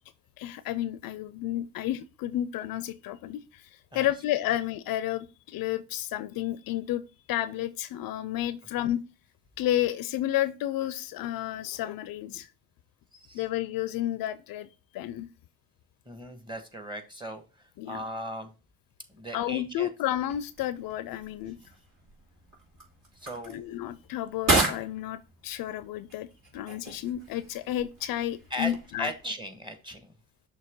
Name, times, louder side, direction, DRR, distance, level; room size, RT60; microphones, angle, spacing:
voice 1, 0.4-9.0 9.6-12.5 13.3-14.7 14.9-15.3 17.8-18.0 19.3-21.6 23.5-26.3 26.5-29.1, left 13 dB, 60° left, 0.5 m, -31 dB
voice 2, 16.0-18.5 19.1-19.9 23.2-23.6 28.5-28.7 29.0-30.1, equal, 10° right, 1.5 m, -38 dB
sound 1, 20.1-29.3, right 2 dB, 50° right, 2.6 m, -34 dB
6.4 x 3.0 x 5.3 m
hypercardioid pair, 50°, 40 cm